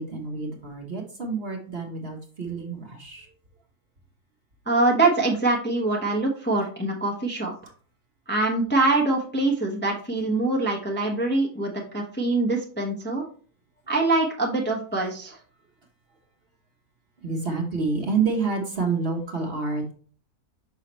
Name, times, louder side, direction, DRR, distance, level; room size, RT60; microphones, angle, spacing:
voice 1, 0.0-3.3 17.2-19.9, right 4 dB, 45° right, 1 dB, 1.2 m, -28 dB
voice 2, 4.7-7.5 8.3-13.2 13.9-15.4, right 2 dB, 10° left, -1 dB, 0.8 m, -24 dB
5.7 x 5.6 x 3.0 m, 0.43 s
omnidirectional pair, 1.6 m